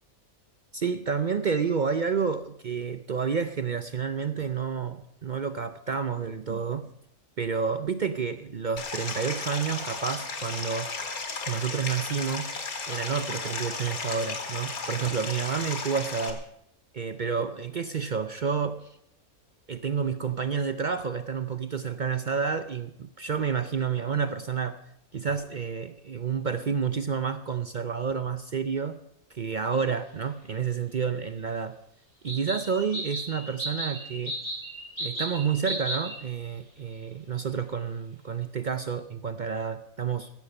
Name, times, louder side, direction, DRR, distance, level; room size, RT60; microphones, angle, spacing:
voice 1, 0.7-6.9 7.4-10.9 11.5-12.5 12.9-16.4 16.9-19.0 19.7-24.8 25.1-29.0 29.3-31.8 32.2-34.4 35.0-40.3, right 6 dB, 55° right, 11 dB, 0.5 m, -30 dB
Stream, 8.8-16.3, left 4 dB, 75° left, 2.3 m, -34 dB
sound 1, 29.7-29.8 32.3-36.2, right 1 dB, 20° right, 5.7 m, -34 dB
15.0 x 13.5 x 5.3 m, 0.74 s
omnidirectional pair, 1.6 m